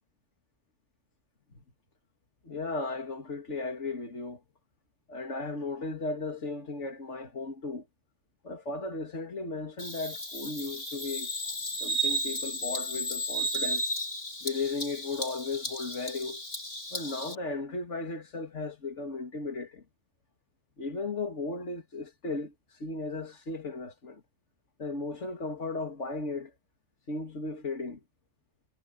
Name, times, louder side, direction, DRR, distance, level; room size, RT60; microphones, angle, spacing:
voice 1, 2.4-4.4 5.1-7.8 8.4-11.3 11.7-13.9 14.4-16.4 16.9-19.8 20.8-24.2 24.8-26.5 27.1-28.0, left 3 dB, 80° left, 2.8 m, -36 dB
Bird vocalization bird call bird song, 9.8-17.3, right 1 dB, 45° left, 3.4 m, -34 dB
omnidirectional pair, 1.2 m